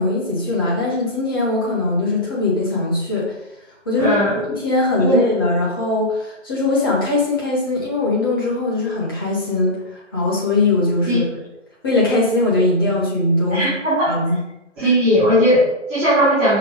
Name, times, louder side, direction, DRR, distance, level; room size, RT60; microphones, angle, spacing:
voice 1, 0.0-3.3 3.8-11.2 11.8-13.7 14.1-14.4 14.8-14.9, left 2 dB, 20° left, -5 dB, 1.6 m, -20 dB
voice 2, 4.0-4.4 5.0-5.2 11.1-11.2 13.5-14.1 14.8-16.6, equal, 5° right, -19 dB, 1.0 m, -17 dB
6.1 x 5.6 x 3.6 m, 0.90 s
figure-of-eight pair, 160°, 38 cm